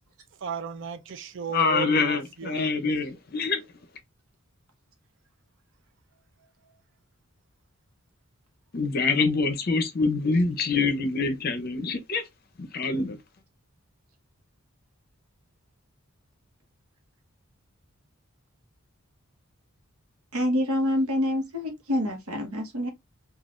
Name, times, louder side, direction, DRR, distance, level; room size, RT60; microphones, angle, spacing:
voice 1, 0.4-2.7, right 5 dB, 55° right, 0.4 m, -34 dB
voice 2, 1.5-3.6 8.7-12.2 12.7-13.2, left 4 dB, 40° left, 0.6 m, -25 dB
voice 3, 20.3-22.9, left 1 dB, 75° right, 1.0 m, -26 dB
3.1 x 2.4 x 2.4 m
head